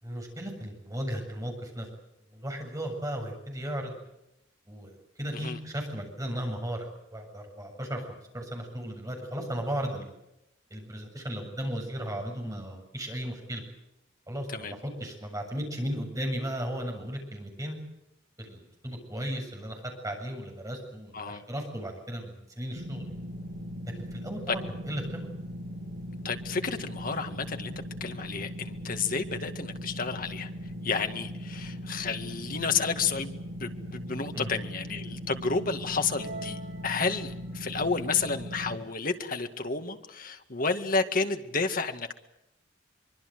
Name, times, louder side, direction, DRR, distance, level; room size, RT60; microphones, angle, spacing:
voice 1, 0.0-1.9 2.3-3.9 4.7-4.9 5.2-10.1 10.7-13.6 14.3-17.8 18.4-23.1 23.9-25.3 34.3-34.5, equal, 20° right, 2 dB, 7.3 m, -35 dB
sound 1, 22.7-38.8, equal, 60° right, 7.9 m, -39 dB
voice 2, 26.2-27.7 28.0-30.5 30.8-42.1, left 4 dB, 45° left, 7 dB, 2.1 m, -31 dB
sound 2, 36.0-37.6, right 2 dB, 85° right, 7.6 m, -44 dB
24.5 x 24.0 x 7.9 m, 0.86 s
head